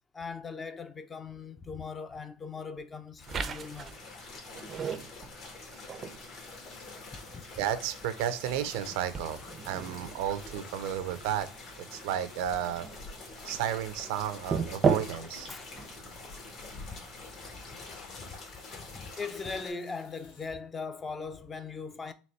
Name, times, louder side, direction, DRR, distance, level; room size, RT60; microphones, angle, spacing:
voice 1, 0.1-4.0 7.3-7.4 15.5-15.8 16.9-17.0 17.5-17.8 18.1-18.4 18.7-22.1, left 4 dB, 20° left, 0.5 m, -40 dB
sound 1, 3.2-19.7, left 3 dB, 55° left, 1.6 m, -47 dB
sound 2, 3.3-18.0, right 6 dB, 35° right, 0.5 m, -38 dB
sound 3, 6.3-20.5, left 3 dB, 80° left, 1.3 m, -57 dB
voice 2, 7.6-11.5 11.9-12.9 13.4-15.5, right 10 dB, 80° right, 0.5 m, -32 dB
4.1 x 2.9 x 3.1 m
supercardioid pair, 120°, 0 cm